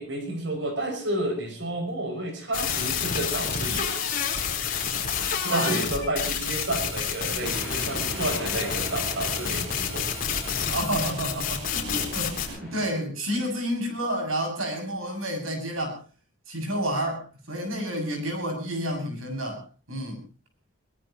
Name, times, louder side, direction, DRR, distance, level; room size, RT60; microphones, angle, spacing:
voice 1, 0.0-3.9 5.5-10.1 12.6-12.7, right 1 dB, 60° right, 5 dB, 6.3 m, -31 dB
sound 1, 2.5-12.5, left 7 dB, 40° left, 4.3 m, -29 dB
voice 2, 5.4-5.8 10.7-16.0 16.5-20.2, equal, 85° right, 5 dB, 7.0 m, -30 dB
sound 2, 7.4-12.9, equal, ahead, 7.7 m, -39 dB
22.5 x 19.5 x 3.0 m, 0.35 s
head